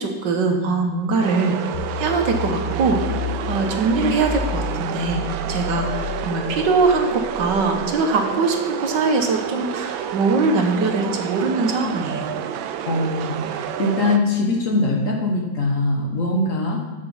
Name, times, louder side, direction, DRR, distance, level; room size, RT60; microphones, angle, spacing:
voice 1, 0.0-1.6 1.9-12.3, right 3 dB, 70° right, 4 dB, 1.6 m, -22 dB
sound 1, 1.2-14.2, right 9 dB, 90° right, 1.4 m, -29 dB
sound 2, 1.7-8.0, left 4 dB, 80° left, 1.5 m, -31 dB
voice 2, 12.9-16.8, left 2 dB, 50° left, 0 dB, 1.4 m, -22 dB
13.0 x 5.3 x 5.4 m, 1.2 s
omnidirectional pair, 2.1 m